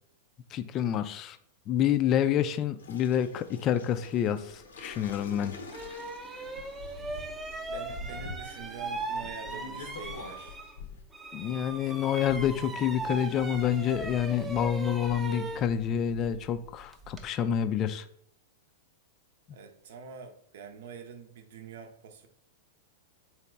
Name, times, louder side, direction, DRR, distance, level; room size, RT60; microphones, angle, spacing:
voice 1, 0.5-1.4 1.7-5.5 11.3-18.0, left 9 dB, 35° left, 12 dB, 0.3 m, -28 dB
sound 1, 2.8-11.0, left 3 dB, 80° left, 0.7 m, -46 dB
sound 2, 5.1-5.2 5.7-10.9 11.1-17.3, right 3 dB, 15° right, 0.6 m, -39 dB
voice 2, 7.7-10.6 19.5-22.3, right 6 dB, 65° right, 6 dB, 0.6 m, -46 dB
3.9 x 2.9 x 3.3 m, 0.65 s
hypercardioid pair, 100°, 0 cm